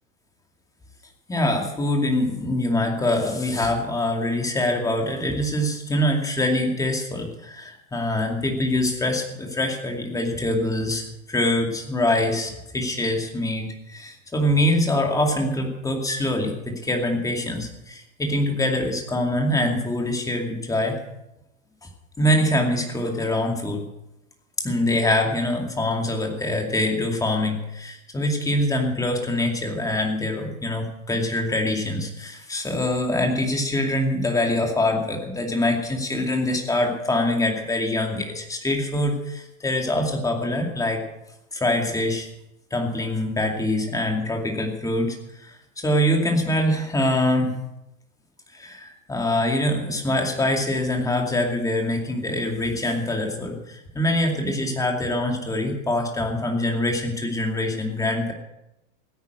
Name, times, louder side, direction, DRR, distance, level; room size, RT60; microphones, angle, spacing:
voice 1, 1.3-21.0 22.2-23.8 24.6-41.0 41.5-42.3 42.7-47.6 48.5-58.3, left 1 dB, 10° left, 2 dB, 2.4 m, -24 dB
16.5 x 9.7 x 7.9 m, 0.89 s
supercardioid pair, 145°, 42 cm